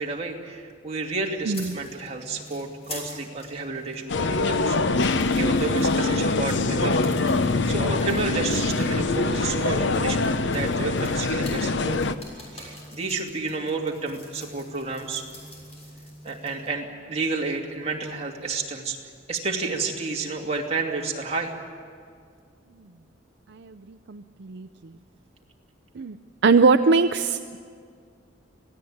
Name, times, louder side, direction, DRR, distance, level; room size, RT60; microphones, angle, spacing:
voice 1, 0.0-7.4 7.7-12.1 12.5-15.2 16.2-19.0 19.3-21.5, right 3 dB, 35° right, -1 dB, 2.6 m, -31 dB
sound 1, 1.5-16.7, equal, 35° left, 6.8 m, -44 dB
voice 2, 1.5-1.8 23.5-24.7 25.9-26.2 26.4-27.6, right 4 dB, 60° right, 10 dB, 0.5 m, -22 dB
sound 2, 4.1-12.2, left 3 dB, 65° left, 0.8 m, -24 dB
26.0 x 17.0 x 8.7 m, 2.1 s
head